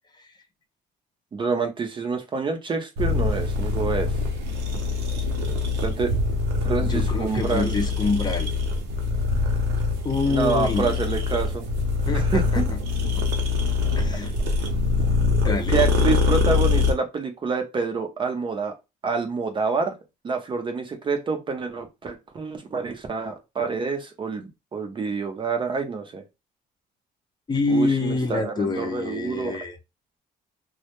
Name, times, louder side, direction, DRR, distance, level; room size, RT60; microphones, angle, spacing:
voice 1, 1.3-4.2 5.8-6.1 6.7-7.7 10.2-11.6 12.1-12.7 15.7-18.7 19.0-19.9 20.2-26.2 27.7-29.6, right 4 dB, 30° right, 0.5 m, -27 dB
sound 1, 3.0-16.9, left 4 dB, 85° right, 0.6 m, -24 dB
voice 2, 6.9-8.5 10.0-11.1 12.1-12.6 14.0-14.4 15.4-15.8 27.5-29.8, left 3 dB, 25° left, 0.5 m, -26 dB
2.1 x 2.1 x 2.9 m
cardioid pair, 110°, 17 cm